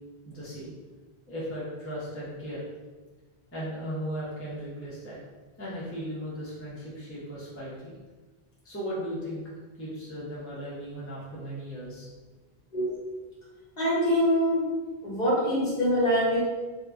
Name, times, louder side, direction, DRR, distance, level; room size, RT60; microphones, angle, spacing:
voice 1, 0.3-0.7 1.3-2.6 3.5-5.2 5.6-8.0 8.6-9.4 9.8-12.1, equal, 15° left, -8 dB, 0.7 m, -36 dB
voice 2, 13.8-14.6 15.0-16.4, equal, 45° left, -8 dB, 1.2 m, -24 dB
2.8 x 2.3 x 3.5 m, 1.3 s
omnidirectional pair, 1.1 m